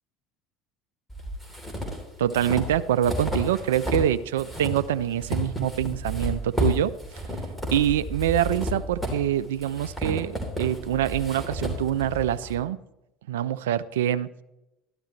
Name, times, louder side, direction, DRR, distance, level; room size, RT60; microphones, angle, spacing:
sound 1, 1.1-4.1 4.4-12.5, left 1 dB, 5° left, 3.3 m, -31 dB
voice 1, 2.2-6.9 7.7-12.8 13.3-14.3, right 11 dB, 75° right, 15 dB, 0.4 m, -25 dB
13.0 x 11.5 x 3.2 m, 0.92 s
figure-of-eight pair, 65°, 0 cm